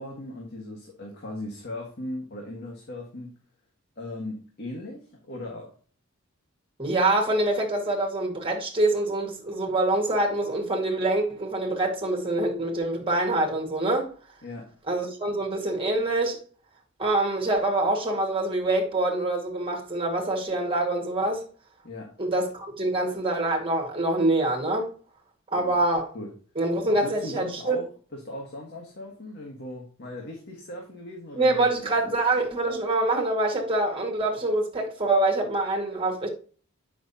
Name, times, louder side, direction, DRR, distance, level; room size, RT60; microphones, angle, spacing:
voice 1, 0.0-3.3 4.0-5.7 14.4-14.7 21.8-22.1 25.5-25.8 26.1-26.3 26.9-32.2, left 1 dB, 50° left, 1.7 m, -38 dB
voice 2, 6.8-14.1 14.9-16.4 17.0-21.4 22.2-24.9 25.5-26.1 26.6-27.8 31.4-36.3, right 2 dB, 25° right, 2.1 m, -25 dB
8.0 x 6.1 x 2.8 m
head